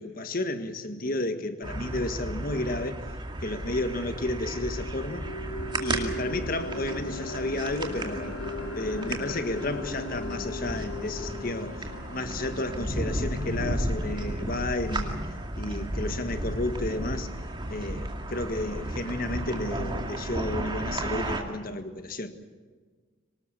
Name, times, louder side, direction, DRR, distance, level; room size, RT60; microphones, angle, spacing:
voice 1, 0.0-3.0 3.4-5.2 5.8-8.4 8.7-15.2 15.6-17.3 17.7-22.4, left 2 dB, 45° left, 9 dB, 1.6 m, -32 dB
sound 1, 1.6-21.4, right 1 dB, 20° right, 2.3 m, -34 dB
sound 2, 3.1-3.2 3.6-15.7, left 2 dB, 90° left, 3.8 m, -39 dB
26.0 x 19.0 x 7.3 m, 1.5 s
head